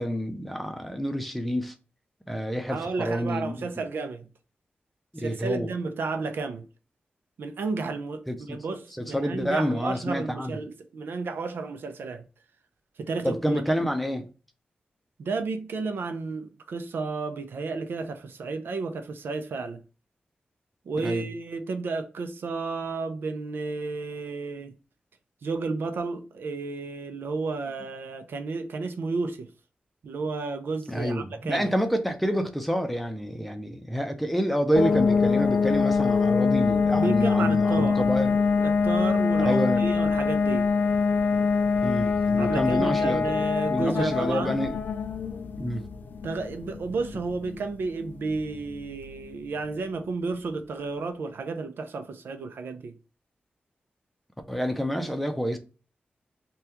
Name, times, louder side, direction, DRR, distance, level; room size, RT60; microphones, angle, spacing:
voice 1, 0.0-1.7 2.3-3.7 5.1-5.7 8.3-8.6 9.0-10.6 13.2-14.3 21.0-21.3 30.9-38.4 39.4-39.9 41.8-44.8 45.6-45.9 54.5-55.6, equal, ahead, 0.5 m, -28 dB
voice 2, 2.7-4.3 5.2-6.7 7.4-12.2 13.0-13.8 15.2-19.8 20.9-24.7 25.4-29.5 30.0-31.7 36.9-38.0 38.6-40.7 42.4-44.6 46.2-53.0, right 4 dB, 85° right, 0.4 m, -32 dB
sound 1, 34.8-49.3, left 5 dB, 65° left, 0.3 m, -24 dB
2.8 x 2.3 x 3.4 m
wide cardioid pair, 100°, 4 cm